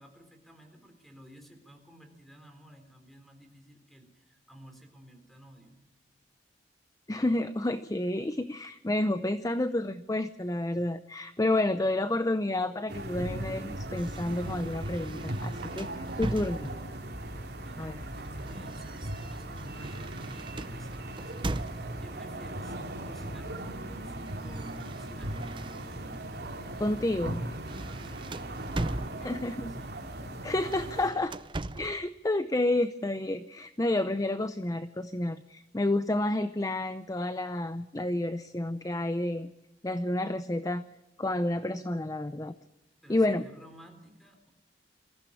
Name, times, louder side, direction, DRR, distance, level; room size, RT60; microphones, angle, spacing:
voice 1, 0.0-5.8 11.7-11.9 17.5-22.8 23.0-24.2 24.4-26.0 28.0-30.1 43.0-44.5, equal, ahead, 6 dB, 3.8 m, -53 dB
voice 2, 7.1-16.7 17.8-18.0 26.8-27.4 29.2-29.8 30.4-31.3 31.7-39.5 39.8-40.8 41.2-42.5 43.1-43.4, left 1 dB, 20° left, 12 dB, 0.6 m, -30 dB
sound 1, 12.9-31.1, right 1 dB, 65° right, 3.4 m, -38 dB
sound 2, 14.0-17.1 18.0-22.2 23.2-23.6 23.9-26.2 26.7-26.9 27.3-29.6 30.6-32.1, right 2 dB, 30° right, 0.7 m, -40 dB
23.5 x 15.0 x 8.6 m, 1.0 s
head